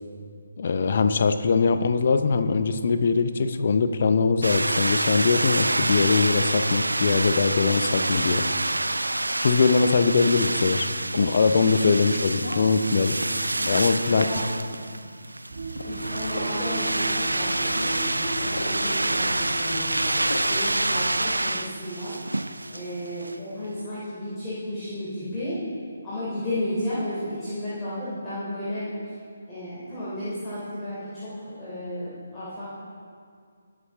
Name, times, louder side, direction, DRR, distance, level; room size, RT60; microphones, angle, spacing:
voice 1, 0.6-8.4 9.4-10.9 11.2-13.2 13.7-14.3, left 4 dB, 45° left, 9 dB, 0.7 m, -22 dB
sound 1, 4.4-23.4, right 2 dB, 80° right, 0.4 m, -27 dB
sound 2, 7.9-8.3 9.7-10.0 11.1-11.4 12.4-12.8 13.6-13.8 14.4-14.6 15.7-15.9 16.3-16.6 17.7-17.9 18.5-18.8 20.3-20.6, left 2 dB, 70° left, 1.4 m, -36 dB
voice 2, 14.0-14.4 15.8-22.2 22.7-25.6 26.0-29.2 29.5-32.6, left 1 dB, 15° left, -13 dB, 3.4 m, -33 dB
sound 3, 15.5-21.4, right 2 dB, 50° right, 1.1 m, -36 dB
19.5 x 7.5 x 3.6 m, 2.2 s
figure-of-eight pair, 145°, 0 cm